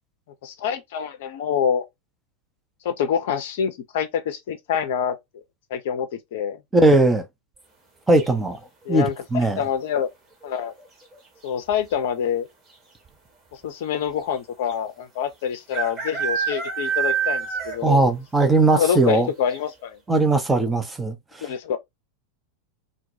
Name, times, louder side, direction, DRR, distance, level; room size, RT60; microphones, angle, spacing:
voice 1, 0.4-1.8 2.8-5.2 5.7-6.6 8.9-9.1 9.6-10.1 10.4-10.7 11.4-12.5 13.6-18.0 18.7-20.0 21.4-21.8, left 8 dB, 55° left, 0.5 m, -26 dB
voice 2, 6.7-7.2 8.1-8.6 8.9-9.6 17.8-19.3 20.1-21.4, right 2 dB, 10° right, 0.6 m, -19 dB
sound 1, 8.2-8.7 10.5-10.9 11.1-11.2 11.4-12.0 12.7-12.8 13.1-13.2 14.7-14.8 15.7-18.0 18.4-18.5 19.0-19.1 19.5-19.6, right 7 dB, 25° right, 1.0 m, -27 dB
2.2 x 2.1 x 2.8 m
figure-of-eight pair, 90°, 0 cm